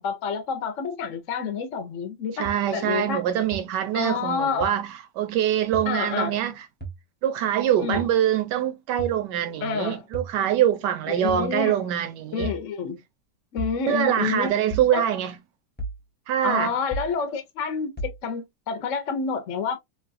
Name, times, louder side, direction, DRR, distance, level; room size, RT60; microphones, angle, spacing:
voice 1, 0.0-3.2 3.9-4.8 5.9-6.4 7.8-8.1 9.6-10.0 11.1-11.8 12.3-13.0 13.5-14.5 14.9-15.1 16.4-19.8, left 5 dB, 60° left, 0.8 m, -28 dB
voice 2, 2.3-6.7 7.2-12.5 13.9-15.3 16.3-16.7, right 10 dB, 70° right, 1.1 m, -24 dB
sound 1, 2.4-2.5 3.5-3.6 4.6-4.7 5.7-5.9 6.8-7.0 7.9-8.1 9.0-9.2 10.1-10.3 11.3-11.5 12.4-12.6 13.6-13.8 14.7-14.9 15.8-16.0 16.9-17.1 18.0-18.2, right 2 dB, 10° left, 0.6 m, -33 dB
3.9 x 2.3 x 2.5 m
omnidirectional pair, 2.1 m